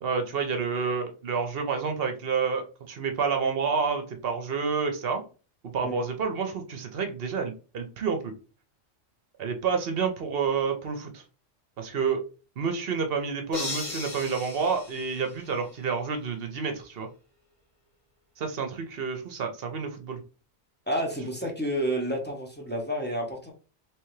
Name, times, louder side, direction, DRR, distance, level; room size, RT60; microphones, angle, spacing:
voice 1, 0.0-5.2 5.6-8.3 9.4-11.2 11.8-12.2 12.6-17.1 18.4-20.2, right 5 dB, 60° right, 5 dB, 0.9 m, -29 dB
sound 1, 13.5-15.9, left 3 dB, 30° left, 1.1 m, -37 dB
voice 2, 20.9-23.5, equal, 10° left, -1 dB, 0.8 m, -30 dB
3.4 x 3.1 x 3.1 m, 0.35 s
omnidirectional pair, 1.2 m